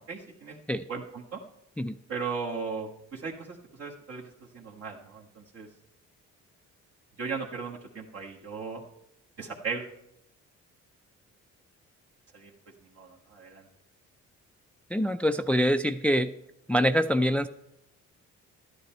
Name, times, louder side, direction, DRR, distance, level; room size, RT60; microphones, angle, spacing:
voice 1, 0.0-0.6 0.9-1.4 2.1-5.7 7.2-8.8 9.4-9.9 12.3-12.5 13.0-13.6, right 5 dB, 55° right, -3 dB, 1.5 m, -37 dB
voice 2, 14.9-16.3 16.7-17.5, equal, 5° left, 10 dB, 0.4 m, -25 dB
12.5 x 9.7 x 4.4 m, 0.82 s
cardioid pair, 90°, 30 cm